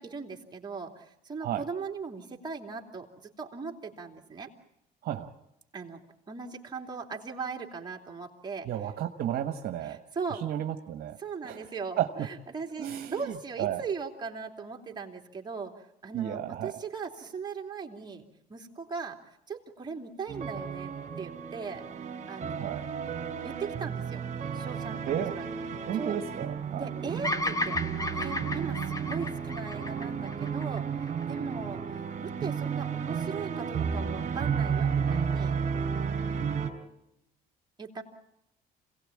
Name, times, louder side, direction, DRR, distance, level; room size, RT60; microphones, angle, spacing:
voice 1, 0.0-4.5 5.7-6.0 6.3-8.7 9.8-10.4 11.2-21.9 22.3-22.8 23.4-24.2 24.5-25.5 25.9-26.2 26.7-27.8 28.1-35.6 37.8-38.0, right 5 dB, 25° right, 1 dB, 3.0 m, -39 dB
voice 2, 8.7-10.0 10.3-11.2 11.4-11.7 12.0-12.3 12.8-13.8 16.1-16.7 22.6-22.9 25.1-25.3 25.9-26.9, right 11 dB, 65° right, 7 dB, 1.4 m, -33 dB
sound 1, 20.3-36.7, right 6 dB, 45° right, 3.1 m, -33 dB
Bird vocalization bird call bird song, 27.2-31.5, left 2 dB, 20° left, 1.4 m, -34 dB
26.5 x 17.5 x 8.7 m, 0.86 s
cardioid pair, 110°, 17 cm